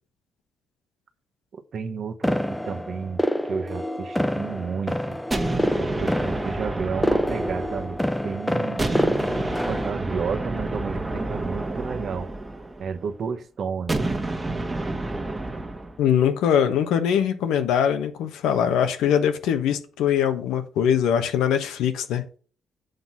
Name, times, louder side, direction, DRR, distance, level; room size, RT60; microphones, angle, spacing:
voice 1, 1.5-2.4 2.6-5.2 5.8-8.0 8.2-9.1 9.7-12.3 12.8-14.1, right 6 dB, 55° right, 1.0 m, -32 dB
sound 1, 2.2-9.9, equal, 5° left, 0.7 m, -27 dB
sound 2, 5.3-8.3 8.8-13.0 13.9-16.0, right 2 dB, 20° right, 1.3 m, -29 dB
voice 2, 16.0-22.2, left 8 dB, 90° left, 1.0 m, -22 dB
7.8 x 4.0 x 5.9 m
cardioid pair, 90°, 0 cm